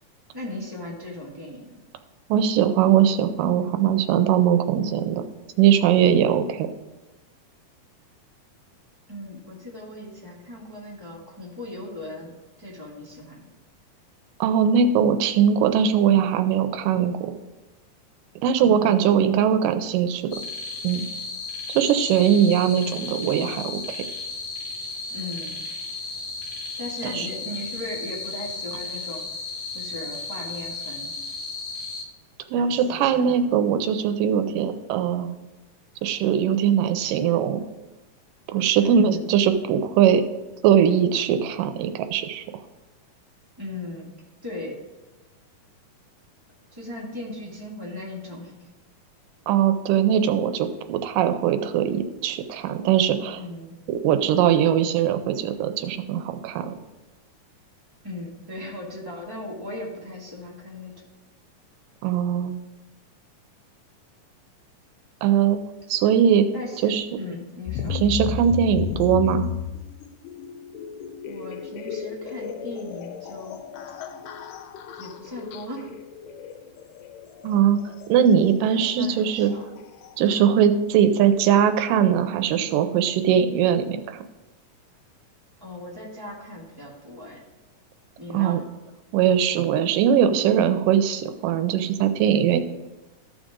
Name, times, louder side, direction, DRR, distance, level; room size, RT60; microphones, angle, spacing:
voice 1, 0.3-1.8 9.1-13.5 18.6-19.1 22.6-23.0 25.1-25.5 26.8-29.2 29.7-31.1 32.5-33.5 34.4-34.6 38.8-39.3 43.6-44.1 44.4-44.8 46.7-48.7 53.4-53.8 58.0-61.0 66.5-66.9 67.2-68.0 71.2-73.6 74.9-75.9 78.6-79.7 85.6-87.4 88.2-88.6, left 1 dB, 10° right, -6 dB, 1.6 m, -37 dB
voice 2, 2.3-5.2 5.6-6.7 14.4-17.2 18.4-20.2 20.8-21.1 21.7-24.0 27.1-27.3 32.5-35.4 36.0-37.6 38.5-40.2 40.6-42.4 49.5-53.4 53.9-56.7 62.0-62.6 65.2-65.6 65.9-66.5 66.8-67.1 67.9-69.5 77.4-77.8 78.1-79.5 80.2-84.2 88.3-88.6 89.1-92.6, right 8 dB, 85° right, 8 dB, 2.3 m, -20 dB
sound 1, 20.3-32.0, left 3 dB, 55° left, 1.4 m, -34 dB
sound 2, 67.7-80.3, left 8 dB, 85° left, 2.3 m, -34 dB
14.0 x 5.1 x 3.7 m, 1.1 s
omnidirectional pair, 3.8 m